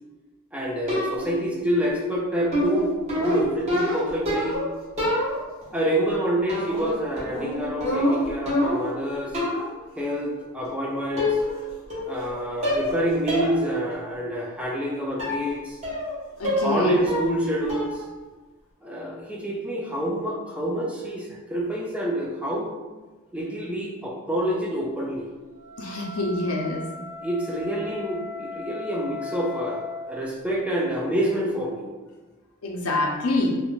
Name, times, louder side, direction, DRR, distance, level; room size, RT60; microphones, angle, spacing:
voice 1, 0.5-4.6 5.7-9.4 10.0-11.4 12.1-15.8 16.6-18.0 18.8-22.7 23.3-25.2 27.2-31.9, equal, 5° right, -3 dB, 0.3 m, -27 dB
sound 1, 0.9-1.4 2.5-4.7 5.0-5.6 6.5-6.9 7.2-9.0 9.3-9.7 10.7-10.8 11.2-11.6 11.9-12.3 12.6-13.0 13.3-13.5 13.9-14.0 15.2-15.4 15.8-16.1 16.4-16.8 17.1-17.4 17.7-18.0, left 1 dB, 30° right, 0.8 m, -26 dB
voice 2, 16.4-17.0 25.8-26.8 32.6-33.6, left 2 dB, 75° left, -1 dB, 0.5 m, -26 dB
Wind instrument woodwind instrument, 25.5-30.1, left 4 dB, 70° right, 0.8 m, -37 dB
2.4 x 2.1 x 3.0 m, 1.3 s
head